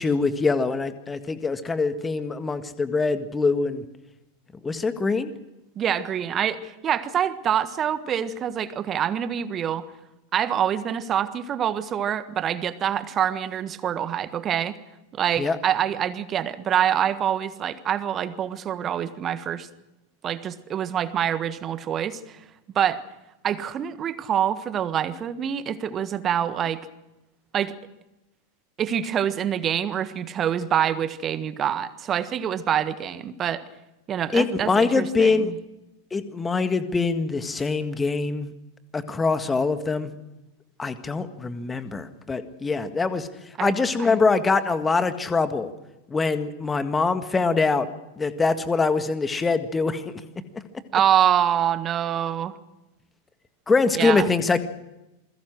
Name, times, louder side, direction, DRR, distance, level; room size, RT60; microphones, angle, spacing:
voice 1, 0.0-3.8 4.6-5.3 15.4-15.6 34.3-35.5 36.1-38.5 38.9-40.1 40.8-43.3 43.6-45.7 46.1-47.9 48.2-50.0 53.7-54.6, left 4 dB, 15° left, 10 dB, 1.8 m, -23 dB
voice 2, 5.7-9.9 10.3-14.8 15.1-19.7 20.2-22.4 22.7-23.0 23.4-26.8 27.5-27.7 28.8-33.6 34.1-35.6 43.6-44.2 50.9-52.5 53.9-54.3, right 9 dB, 25° right, 13 dB, 1.5 m, -25 dB
28.0 x 21.5 x 6.3 m, 0.95 s
figure-of-eight pair, 90°, 0 cm